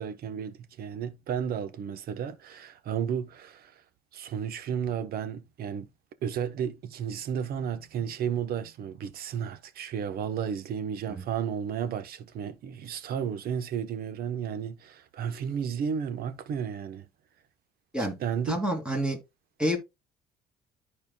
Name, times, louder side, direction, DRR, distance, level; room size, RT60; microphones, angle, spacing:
voice 1, 0.0-3.8 4.1-5.9 6.2-17.1 18.2-18.6, right 8 dB, 65° right, 1.0 m, -33 dB
voice 2, 18.5-19.2 19.6-19.8, right 1 dB, 5° right, 2.6 m, -28 dB
13.0 x 4.4 x 2.3 m
cardioid pair, 110°, 17 cm